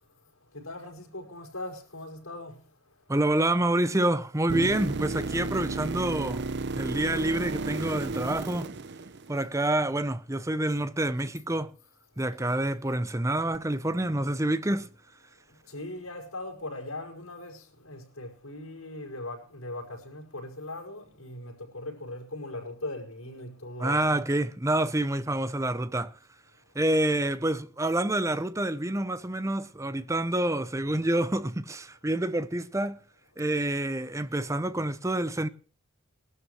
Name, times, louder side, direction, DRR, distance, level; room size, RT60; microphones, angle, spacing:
voice 1, 0.5-2.6 15.7-24.2, left 2 dB, 85° left, 5.5 m, -39 dB
voice 2, 3.1-6.4 6.8-8.7 9.3-11.7 12.2-14.9 23.8-26.1 26.7-33.0 33.4-35.5, right 1 dB, 15° right, 0.7 m, -27 dB
sound 1, 4.5-9.6 13.5-13.6, right 3 dB, 55° right, 0.6 m, -33 dB
21.0 x 12.5 x 3.1 m
head